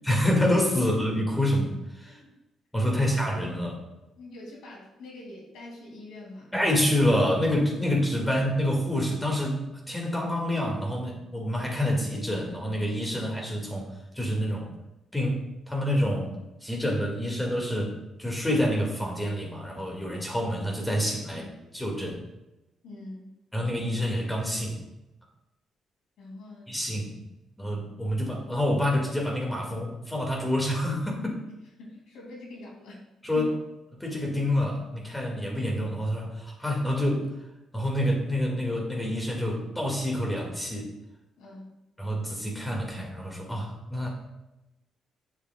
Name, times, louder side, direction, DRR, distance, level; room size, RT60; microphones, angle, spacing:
voice 1, 0.1-2.2 2.7-3.8 6.5-9.6 9.9-14.7 15.1-15.4 15.7-16.4 16.6-22.2 23.5-24.8 26.7-27.2 27.6-31.4 33.2-33.5 33.9-37.3 37.7-40.9 42.0-44.1, left 1 dB, 10° left, -1 dB, 2.0 m, -27 dB
voice 2, 2.0-2.4 2.8-3.0 4.2-6.5 22.8-23.3 26.2-26.7 31.8-33.1 33.3-33.5 41.4-41.7, left 2 dB, 85° left, -2 dB, 2.5 m, -44 dB
8.4 x 6.6 x 2.3 m, 0.96 s
cardioid pair, 90°, 0 cm